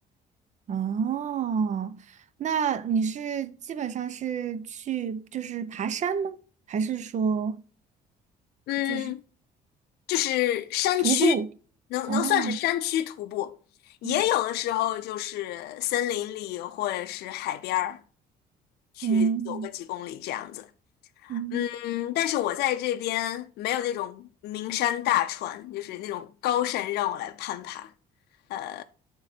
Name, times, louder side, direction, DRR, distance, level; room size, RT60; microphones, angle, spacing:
voice 1, 0.7-6.4 6.7-7.6 8.9-9.1 11.0-11.5 12.1-12.6 14.0-14.2 19.0-19.7 21.3-21.7, right 7 dB, 45° right, 0.7 m, -28 dB
voice 2, 8.7-9.2 10.1-11.4 11.9-13.5 13.9-18.0 19.0-20.7 21.2-27.9 28.5-28.8, left 13 dB, 75° left, 0.5 m, -28 dB
9.7 x 3.7 x 4.3 m
cardioid pair, 110°, 17 cm